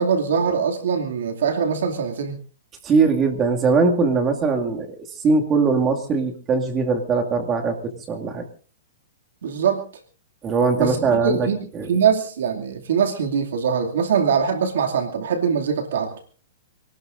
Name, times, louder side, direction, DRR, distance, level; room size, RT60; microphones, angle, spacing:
voice 1, 0.0-2.4 9.4-9.8 10.8-11.6 11.9-16.2, right 6 dB, 75° right, 2 dB, 2.5 m, -22 dB
voice 2, 2.8-8.4 10.4-11.5 11.7-11.9, right 4 dB, 20° right, 3 dB, 2.3 m, -21 dB
26.5 x 19.0 x 2.6 m, 0.39 s
hypercardioid pair, 160°, 0 cm